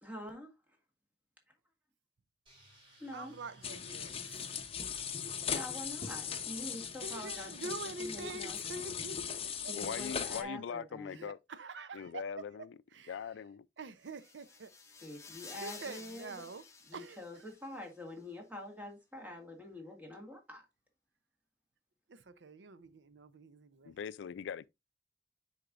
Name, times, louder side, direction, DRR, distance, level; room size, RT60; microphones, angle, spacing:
voice 1, 0.0-0.5 3.0-3.4 5.5-7.7 8.0-8.6 9.7-11.3 15.0-16.5 16.8-20.7, left 1 dB, 10° right, 1.9 m, -46 dB
sound 1, 2.5-7.2, right 1 dB, 30° right, 4.1 m, -58 dB
voice 2, 3.1-4.2 7.0-9.8 10.3-10.4 11.1-12.2 12.9-13.2 13.8-14.7 15.6-16.6 16.9-17.2 22.1-23.9, right 3 dB, 80° right, 0.6 m, -45 dB
sound 2, 3.6-10.4, left 7 dB, 35° left, 0.8 m, -39 dB
voice 3, 9.8-11.4 11.9-12.8 13.1-13.7 23.8-24.7, left 7 dB, 90° left, 0.4 m, -41 dB
sound 3, 14.0-17.9, left 4 dB, 15° left, 1.1 m, -52 dB
9.9 x 4.4 x 2.5 m
head